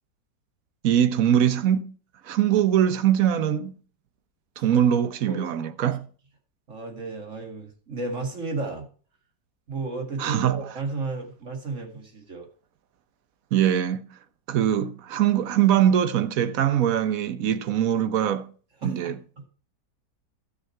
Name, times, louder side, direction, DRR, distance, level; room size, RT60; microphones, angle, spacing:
voice 1, 0.8-1.9 2.2-3.7 4.6-6.1 10.2-10.6 13.5-14.0 14.5-18.5 18.8-19.2, right 10 dB, 60° right, 1.1 m, -22 dB
voice 2, 6.7-8.9 9.7-12.5 18.8-19.5, right 3 dB, 45° right, 2.3 m, -33 dB
13.0 x 6.5 x 4.4 m
omnidirectional pair, 1.9 m